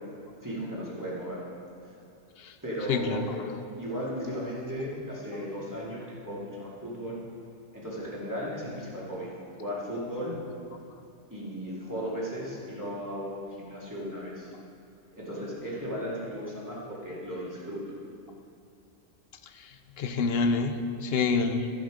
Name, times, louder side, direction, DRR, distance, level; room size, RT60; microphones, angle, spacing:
voice 1, 0.4-1.4 2.6-3.3 3.8-7.2 7.7-9.3 9.6-10.4 11.3-14.5 15.2-17.8, equal, 15° right, -7 dB, 2.4 m, -36 dB
voice 2, 2.9-3.6 20.0-21.7, left 4 dB, 60° left, 8 dB, 0.8 m, -27 dB
14.5 x 6.1 x 5.0 m, 2.7 s
omnidirectional pair, 1.3 m